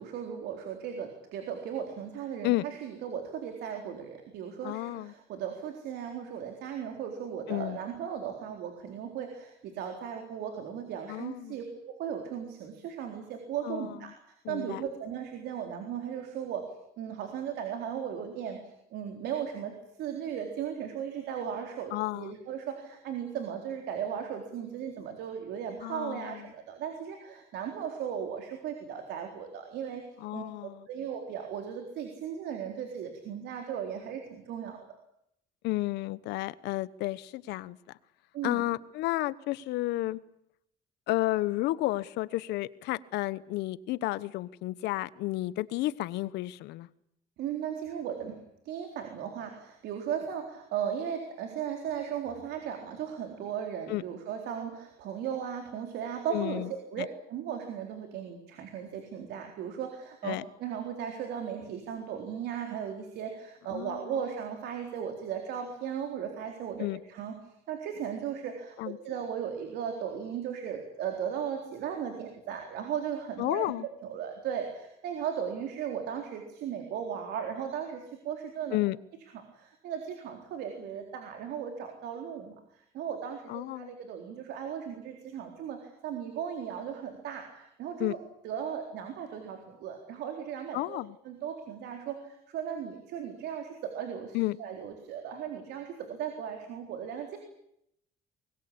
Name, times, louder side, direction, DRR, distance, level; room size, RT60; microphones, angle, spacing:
voice 1, 0.0-14.1 14.5-16.7 17.0-18.6 18.9-19.7 20.0-30.0 30.3-34.8 38.3-38.6 47.4-56.6 56.9-67.4 67.7-73.6 74.0-78.8 79.5-88.2 88.4-91.0 91.2-97.4, right 8 dB, 80° right, 4 dB, 4.1 m, -37 dB
voice 2, 4.6-5.1 7.5-7.8 11.1-11.6 13.6-14.0 14.4-14.8 21.9-22.3 25.8-26.4 30.2-30.9 35.6-37.8 38.4-40.2 41.1-46.9 53.9-54.0 56.3-56.7 57.0-57.1 60.2-60.4 63.7-64.0 66.8-67.0 68.8-69.0 73.4-73.9 78.7-79.0 83.5-83.9 88.0-88.1 90.7-91.1 94.3-94.6, left 17 dB, 85° left, 18 dB, 1.1 m, -32 dB
24.5 x 21.0 x 8.7 m, 0.77 s
cardioid pair, 110°, 17 cm